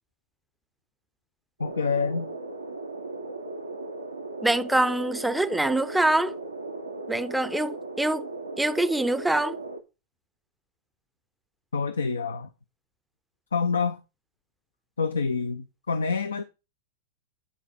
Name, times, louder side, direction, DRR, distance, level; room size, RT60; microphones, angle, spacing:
voice 1, 1.6-2.3 11.7-12.5 13.5-14.0 15.0-16.4, left 5 dB, 70° left, 0.5 m, -27 dB
sound 1, 1.6-9.8, right 2 dB, 85° right, 0.9 m, -37 dB
voice 2, 4.4-6.3 7.1-8.3 8.6-9.6, right 1 dB, 5° right, 0.6 m, -24 dB
9.9 x 4.1 x 5.2 m
figure-of-eight pair, 90°, 0 cm